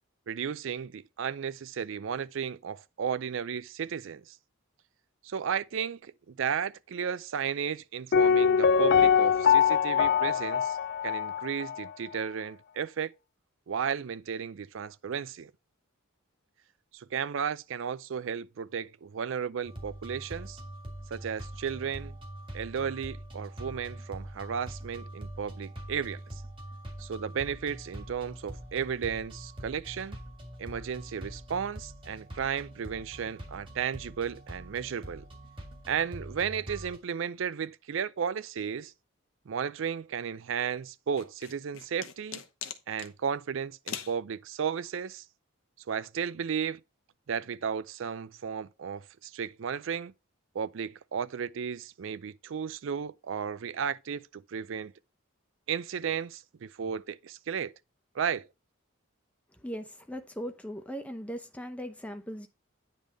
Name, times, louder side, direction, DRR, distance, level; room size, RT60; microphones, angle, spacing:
voice 1, 0.3-4.4 5.2-10.8 11.0-13.1 13.7-15.5 16.9-20.6 21.1-22.2 22.5-26.2 27.0-30.2 30.6-35.2 35.9-38.9 39.5-42.4 42.9-45.2 45.9-46.8 47.3-50.1 50.5-54.9 55.7-57.7 58.1-58.5, right 7 dB, 60° right, 0.4 m, -34 dB
Piano, 8.1-11.9 12.2-12.3, left 7 dB, 50° left, 0.3 m, -23 dB
sound 1, 19.6-37.0, right 1 dB, 25° right, 1.9 m, -44 dB
sound 2, 41.2-43.1 43.9-44.2, left 8 dB, 75° left, 0.9 m, -40 dB
voice 2, 59.6-62.5, equal, 5° left, 0.7 m, -39 dB
9.2 x 3.5 x 5.0 m
head